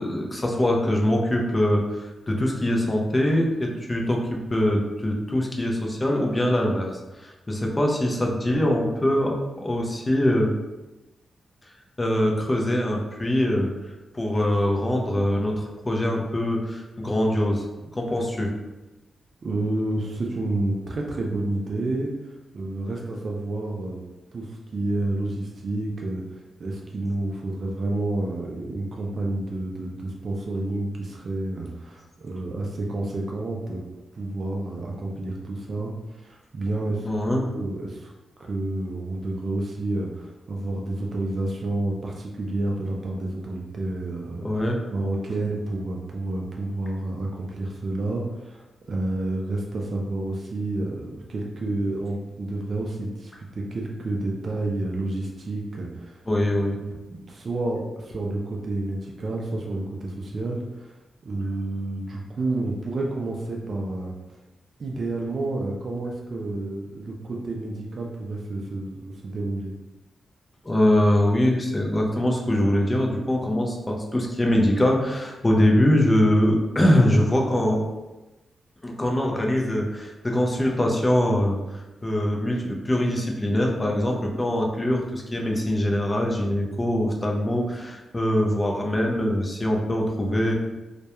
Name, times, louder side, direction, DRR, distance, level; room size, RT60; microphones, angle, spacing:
voice 1, 0.0-10.5 12.0-13.7 14.1-17.7 17.9-18.5 37.0-37.5 44.4-44.8 56.3-56.8 70.6-77.8 78.8-90.5, left 1 dB, 20° left, 0 dB, 0.4 m, -23 dB
voice 2, 19.4-22.1 22.5-24.0 24.3-33.8 34.1-38.1 38.4-44.5 44.9-56.2 57.1-61.0 61.2-64.4 64.8-69.7, right 2 dB, 50° right, -1 dB, 0.3 m, -30 dB
2.2 x 2.1 x 2.8 m, 1.1 s
wide cardioid pair, 115°, 0 cm